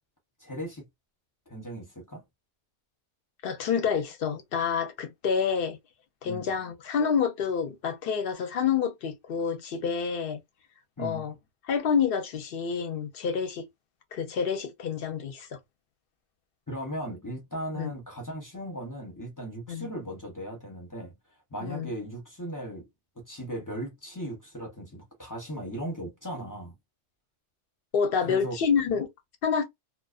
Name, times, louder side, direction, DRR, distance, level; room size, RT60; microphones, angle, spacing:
voice 1, 0.4-0.9 1.5-2.2 6.2-6.5 11.0-11.3 16.7-21.1 21.5-22.9 23.2-26.7 28.2-28.6, right 1 dB, 20° left, 0.7 m, -37 dB
voice 2, 3.4-5.8 6.2-10.4 11.0-11.3 11.7-13.6 14.1-15.5 17.7-17.9 19.7-19.9 21.6-21.9 27.9-29.1 29.4-29.6, left 6 dB, 60° left, 0.7 m, -28 dB
2.4 x 2.1 x 2.4 m
omnidirectional pair, 1.2 m